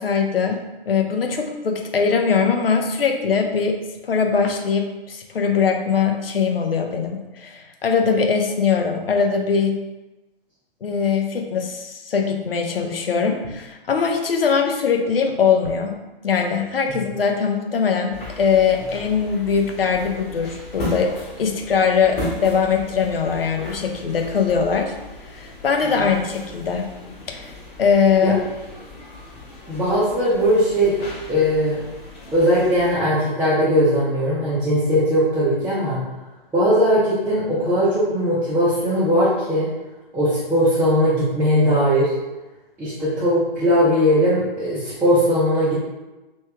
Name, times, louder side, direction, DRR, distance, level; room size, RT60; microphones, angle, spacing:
voice 1, 0.0-9.8 10.8-16.0 16.2-24.9 25.3-26.9 27.3-27.5 27.8-28.4, left 6 dB, 70° left, 3 dB, 0.7 m, -21 dB
sound 1, 18.1-32.9, left 2 dB, 25° left, 1.4 m, -36 dB
voice 2, 29.7-30.9 31.3-31.8 32.3-36.0 36.5-39.7 40.1-42.1 42.8-45.7, equal, 5° right, -12 dB, 0.7 m, -19 dB
3.1 x 3.1 x 3.4 m, 1.1 s
figure-of-eight pair, 130°, 30 cm